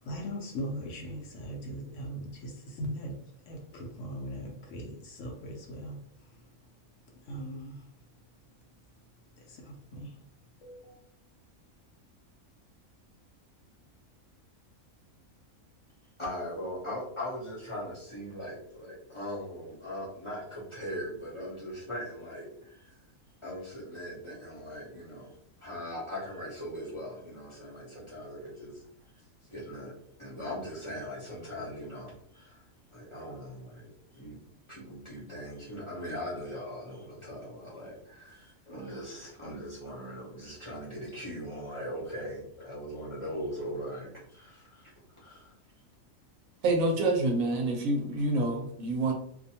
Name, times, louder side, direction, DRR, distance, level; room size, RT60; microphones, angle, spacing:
voice 1, 0.0-6.5 7.2-7.9 9.4-10.2 10.6-11.0, equal, 70° left, 0.9 m, -40 dB
voice 2, 16.2-23.0 23.4-25.3 25.6-28.8 29.4-29.9 30.2-32.6 32.9-34.4 34.7-44.9 45.2-45.5, equal, 25° left, 0.7 m, -40 dB
voice 3, 46.6-49.1, right 2 dB, 75° right, 1.0 m, -27 dB
2.6 x 2.2 x 2.7 m
omnidirectional pair, 1.5 m